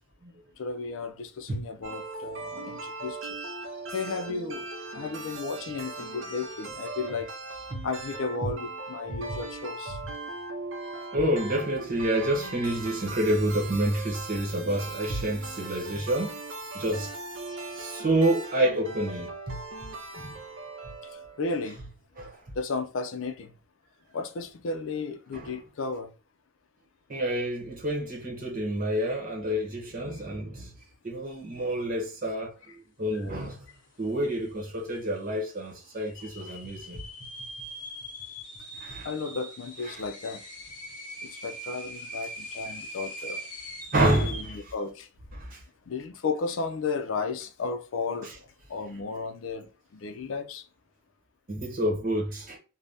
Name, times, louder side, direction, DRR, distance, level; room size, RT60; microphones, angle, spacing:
voice 1, 0.6-3.4 3.9-4.7 4.9-7.3 7.8-10.0 21.4-21.8 22.6-23.5 24.1-26.1 39.0-40.4 41.3-43.4 44.2-45.1 45.9-48.3 48.7-49.7 49.9-50.6, left 4 dB, 70° left, 0.4 m, -33 dB
sound 1, 1.8-21.7, right 3 dB, 70° right, 0.6 m, -39 dB
voice 2, 9.1-9.4 9.9-10.0 11.1-16.4 16.7-17.1 17.7-19.6 20.2-20.4 20.8-20.9 22.2-22.4 25.3-25.6 27.1-30.7 31.0-33.6 34.0-37.0 38.7-39.1 39.8-40.0 43.9-44.7 45.3-45.6 48.2-48.3 51.5-52.6, right 1 dB, 40° right, 0.9 m, -28 dB
sound 2, 33.7-33.8 34.0-34.6 35.1-35.2 35.9-44.7, equal, 40° left, 1.0 m, -41 dB
2.6 x 2.1 x 3.4 m
head